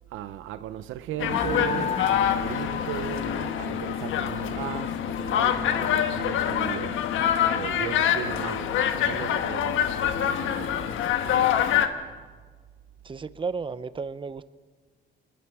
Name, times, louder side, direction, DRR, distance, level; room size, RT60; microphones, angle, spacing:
voice 1, 0.1-7.0 7.5-11.7, right 12 dB, 90° right, 0.8 m, -37 dB
sound 1, 1.2-11.9, left 10 dB, 85° left, 1.3 m, -26 dB
sound 2, 1.3-7.7, left 7 dB, 35° left, 0.9 m, -35 dB
voice 2, 13.0-14.4, right 4 dB, 25° right, 0.8 m, -33 dB
27.0 x 21.0 x 4.8 m
cardioid pair, 90°, 20 cm